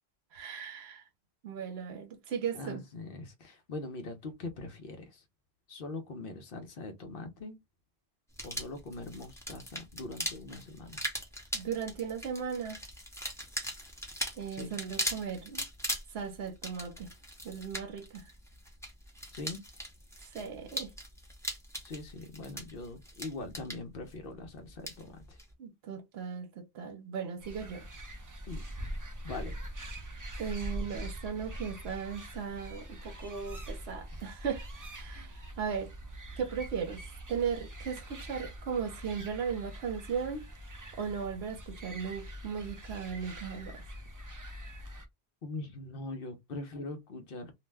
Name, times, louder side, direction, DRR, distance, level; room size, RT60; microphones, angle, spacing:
voice 1, 0.3-1.0 1.4-2.8 11.5-12.8 14.4-15.6 16.1-17.1 17.4-18.2 20.3-20.9 25.6-27.9 30.4-35.9 36.4-37.0 37.3-40.5 40.9-43.8, right 6 dB, 80° right, 0.9 m, -37 dB
voice 2, 2.5-5.2 5.7-7.6 8.4-11.0 14.5-14.7 19.3-19.6 21.8-25.4 28.5-28.6 29.2-29.6 45.4-47.5, left 2 dB, 65° left, 0.9 m, -42 dB
sound 1, 8.3-25.5, equal, 5° left, 0.7 m, -40 dB
sound 2, 27.4-45.1, equal, 25° right, 0.4 m, -43 dB
2.5 x 2.1 x 3.3 m
omnidirectional pair, 1.1 m